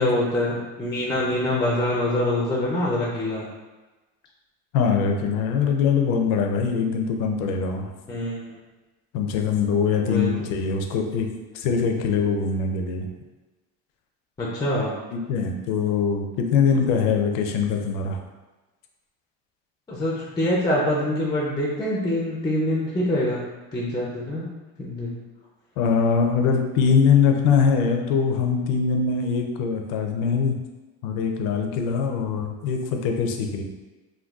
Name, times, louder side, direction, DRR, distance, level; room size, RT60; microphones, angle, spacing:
voice 1, 0.0-3.5 8.1-8.3 10.1-10.3 14.4-14.9 19.9-23.4 23.7-24.5 24.8-25.2, left 1 dB, 10° left, -3 dB, 0.4 m, -25 dB
voice 2, 4.7-7.9 9.1-11.3 11.5-13.1 15.1-18.2 25.8-30.6 31.0-33.6, left 6 dB, 75° left, 3 dB, 0.5 m, -22 dB
3.8 x 2.3 x 2.3 m, 1.2 s
cardioid pair, 120°, 33 cm